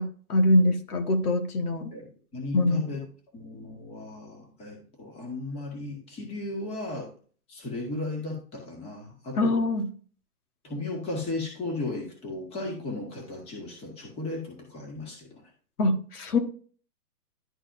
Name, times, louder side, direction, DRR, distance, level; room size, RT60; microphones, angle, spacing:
voice 1, 0.0-1.9 2.5-2.8 9.4-9.9 15.8-16.4, left 1 dB, 75° left, 7 dB, 1.5 m, -24 dB
voice 2, 2.3-3.0 3.3-7.1 7.5-9.6 10.6-15.4, left 2 dB, 15° left, 1 dB, 1.7 m, -35 dB
12.0 x 4.0 x 2.6 m, 0.43 s
hypercardioid pair, 160°, 45 cm